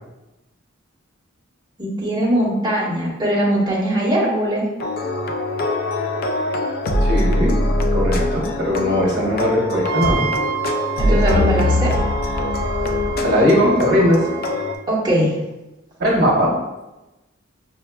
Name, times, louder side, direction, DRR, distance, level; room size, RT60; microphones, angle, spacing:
voice 1, 1.8-4.6 11.0-11.9 14.9-15.3, equal, 20° right, -6 dB, 1.0 m, -20 dB
sound 1, 4.8-14.7, left 1 dB, 50° left, 0.3 m, -22 dB
voice 2, 7.0-7.6 7.9-10.3 11.1-11.6 13.2-14.2 16.0-16.5, equal, 55° right, -3 dB, 1.0 m, -19 dB
Wind instrument woodwind instrument, 9.8-14.8, right 10 dB, 85° right, 0.3 m, -30 dB
5.6 x 2.2 x 2.2 m, 1.0 s
head